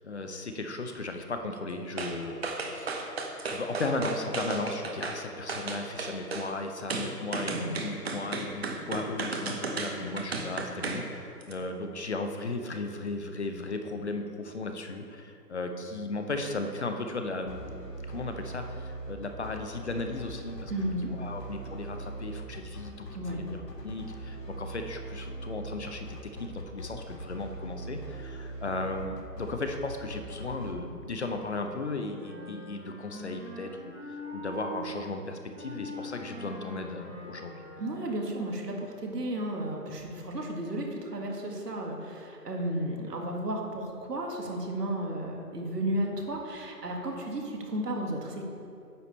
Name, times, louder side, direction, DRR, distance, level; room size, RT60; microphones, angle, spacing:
voice 1, 0.0-2.4 2.7-3.0 3.4-37.6, left 3 dB, 45° left, 5 dB, 0.7 m, -36 dB
sound 1, 2.0-2.2 2.4-5.2 5.5-6.5 6.9-11.1 11.4-11.5, right 3 dB, 40° right, 0.8 m, -34 dB
sound 2, 17.5-30.7, right 2 dB, 80° left, 1.8 m, -41 dB
voice 2, 20.7-21.1 23.1-23.4 37.8-48.4, right 1 dB, 75° right, 0 dB, 1.9 m, -33 dB
Wind instrument woodwind instrument, 31.6-34.8 35.5-38.2, left 1 dB, 10° right, 1.1 m, -44 dB
9.7 x 6.9 x 4.2 m, 2.5 s
hypercardioid pair, 160°, 49 cm